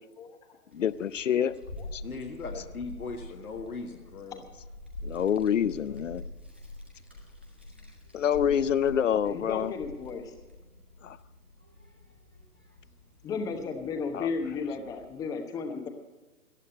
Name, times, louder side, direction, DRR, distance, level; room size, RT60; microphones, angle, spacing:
voice 1, 0.7-1.5 1.9-2.0 5.0-6.2 8.1-9.7 11.0-11.2 14.1-14.3, left 8 dB, 55° left, 17 dB, 0.8 m, -27 dB
Child speech kid speaking, 0.7-15.1, left 2 dB, 10° right, 0.4 m, -46 dB
voice 2, 2.0-4.4, left 4 dB, 70° left, 2 dB, 1.8 m, -38 dB
voice 3, 9.3-10.2 13.2-15.9, left 5 dB, 10° left, 5 dB, 1.0 m, -34 dB
18.5 x 12.5 x 4.2 m, 1.2 s
figure-of-eight pair, 135°, 46 cm